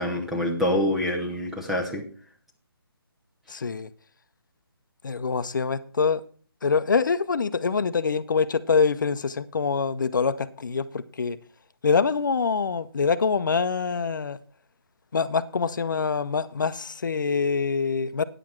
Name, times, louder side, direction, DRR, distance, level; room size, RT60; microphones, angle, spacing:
voice 1, 0.0-2.0, left 1 dB, ahead, 0.5 m, -26 dB
voice 2, 3.5-3.9 5.0-6.2 6.6-11.4 11.8-14.4 15.1-18.2, left 5 dB, 50° left, 0.7 m, -25 dB
10.0 x 7.5 x 4.4 m
figure-of-eight pair, 165°, 13 cm